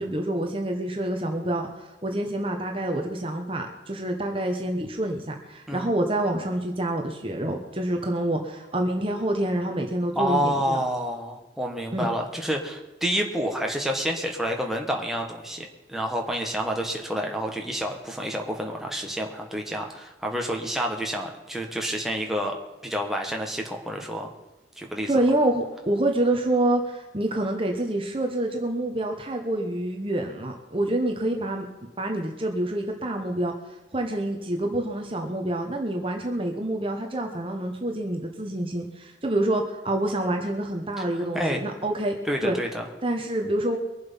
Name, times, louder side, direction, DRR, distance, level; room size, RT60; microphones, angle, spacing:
voice 1, 0.0-10.8 11.9-12.1 25.1-33.5 33.9-42.2 42.4-42.5 43.0-43.8, right 1 dB, 30° right, 3 dB, 1.2 m, -27 dB
voice 2, 10.1-22.5 22.8-24.3 24.8-25.1 41.0-41.1 41.3-41.6 42.3-42.9, equal, ahead, 1 dB, 1.5 m, -29 dB
23.0 x 7.7 x 5.6 m, 1.1 s
head